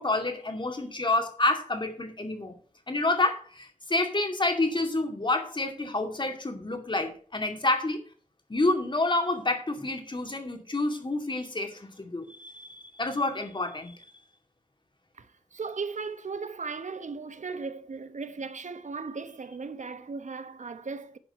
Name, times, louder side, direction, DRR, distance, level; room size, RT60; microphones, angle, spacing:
voice 1, 0.0-2.6 2.9-8.0 8.5-13.9, left 2 dB, 35° left, 2.4 m, -28 dB
voice 2, 15.1-21.2, right 4 dB, 65° right, 1.0 m, -37 dB
11.5 x 4.8 x 6.6 m
cardioid pair, 55°, 14 cm